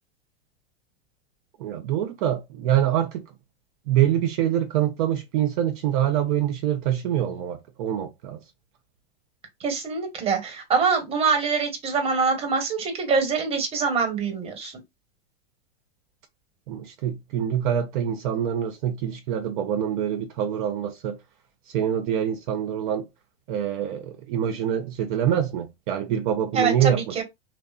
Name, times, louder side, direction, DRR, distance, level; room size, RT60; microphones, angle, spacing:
voice 1, 1.6-3.2 3.9-8.4 16.7-21.2 21.7-23.1 23.5-27.2, right 10 dB, 55° right, 0.5 m, -25 dB
voice 2, 9.6-14.7 26.5-27.2, right 5 dB, 20° right, 0.8 m, -24 dB
2.7 x 2.0 x 2.3 m
hypercardioid pair, 130°, 31 cm